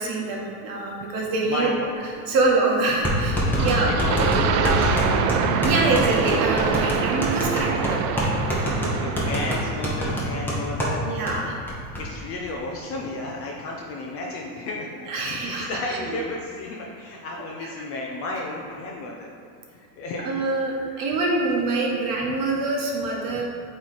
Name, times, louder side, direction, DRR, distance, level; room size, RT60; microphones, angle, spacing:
voice 1, 0.0-1.7 2.3-3.9 5.6-8.0 11.0-11.6 15.1-16.2 17.6-17.8 20.2-23.4, right 3 dB, 45° right, -2 dB, 1.3 m, -25 dB
voice 2, 1.4-1.9 3.5-5.5 8.7-11.0 11.4-11.5 12.0-19.3 19.7-20.3 20.9-21.2 23.3-23.4, left 2 dB, 30° left, -1 dB, 0.4 m, -32 dB
sound 1, 2.1-2.2 3.0-11.0 11.3-11.4 11.7-12.0, equal, 5° left, 1.0 m, -25 dB
sound 2, 3.6-9.9, right 7 dB, 65° right, 0.6 m, -25 dB
8.3 x 3.2 x 4.2 m, 2.5 s
supercardioid pair, 140°, 50 cm